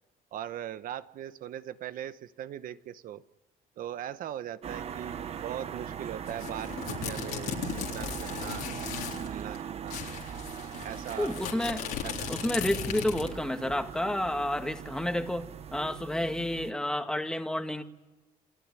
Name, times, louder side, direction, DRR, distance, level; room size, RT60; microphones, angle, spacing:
voice 1, 0.3-3.2 3.8-10.0 10.8-11.3 12.0-12.5, right 11 dB, 65° right, 13 dB, 1.1 m, -40 dB
sound 1, 4.6-16.7, right 8 dB, 45° right, 1.0 m, -40 dB
sound 2, 6.3-9.3 9.5-9.6 9.9-13.4, left 8 dB, 85° left, 3.9 m, -37 dB
voice 2, 11.2-11.8 12.3-17.8, left 1 dB, 5° left, 6 dB, 1.9 m, -30 dB
29.0 x 20.5 x 9.8 m, 1.1 s
cardioid pair, 120°, 15 cm